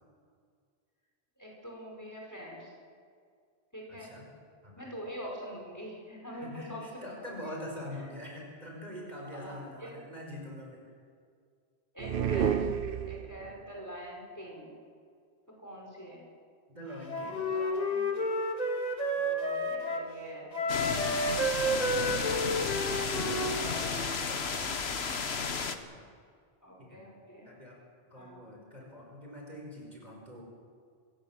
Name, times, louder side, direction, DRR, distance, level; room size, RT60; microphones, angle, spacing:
voice 1, 1.4-2.7 3.7-4.2 4.8-7.5 9.3-9.9 11.9-12.7 13.0-14.7 15.6-16.2 17.1-18.1 19.1-20.9 26.6-27.5 28.2-28.4, equal, 15° left, -2 dB, 5.3 m, -45 dB
voice 2, 3.9-4.3 4.6-4.9 6.3-10.8 13.3-13.4 16.7-17.4 22.9-26.0 26.8-27.1 27.4-27.8 28.1-30.4, left 1 dB, 40° right, -1 dB, 5.3 m, -45 dB
sound 1, 12.0-13.6, right 8 dB, 60° right, 1.0 m, -30 dB
Wind instrument woodwind instrument, 17.1-20.1 20.5-24.0, equal, 40° left, 2.2 m, -31 dB
sound 2, 20.7-25.8, left 5 dB, 75° left, 1.5 m, -33 dB
26.0 x 16.0 x 7.5 m, 2.2 s
omnidirectional pair, 1.1 m